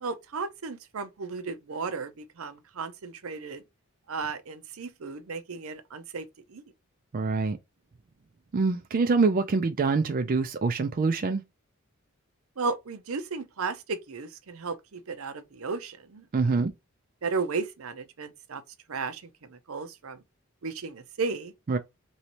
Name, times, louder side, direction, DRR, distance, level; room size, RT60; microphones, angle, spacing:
voice 1, 0.0-3.6 4.1-6.6 12.6-16.2 17.2-18.6 18.9-20.2 20.6-21.5, right 4 dB, 75° right, 0.6 m, -34 dB
voice 2, 7.1-7.6 8.5-11.4 16.3-16.7 21.7-21.8, right 4 dB, 40° right, 0.4 m, -25 dB
3.1 x 2.8 x 2.9 m
head